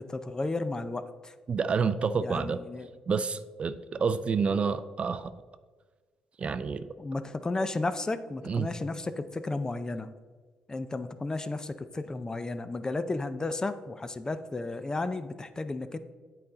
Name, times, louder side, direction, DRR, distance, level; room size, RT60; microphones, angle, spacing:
voice 1, 0.0-1.3 2.2-2.9 7.0-10.1 10.7-16.0, left 2 dB, 25° left, 11 dB, 0.5 m, -33 dB
voice 2, 1.5-2.6 3.1-5.3 6.4-6.9 8.5-8.7, right 5 dB, 45° right, 12 dB, 0.4 m, -28 dB
8.4 x 4.2 x 3.8 m, 1.4 s
supercardioid pair, 65°, 3 cm